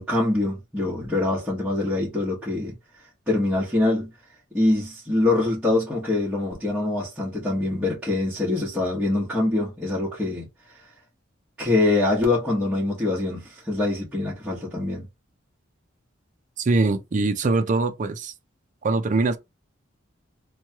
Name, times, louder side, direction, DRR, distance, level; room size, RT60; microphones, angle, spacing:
voice 1, 0.0-2.7 3.3-4.1 4.5-10.5 11.6-15.0, left 2 dB, 5° right, 1.1 m, -24 dB
voice 2, 16.6-18.3 18.8-19.4, right 3 dB, 40° right, 0.4 m, -22 dB
3.0 x 2.2 x 2.9 m
head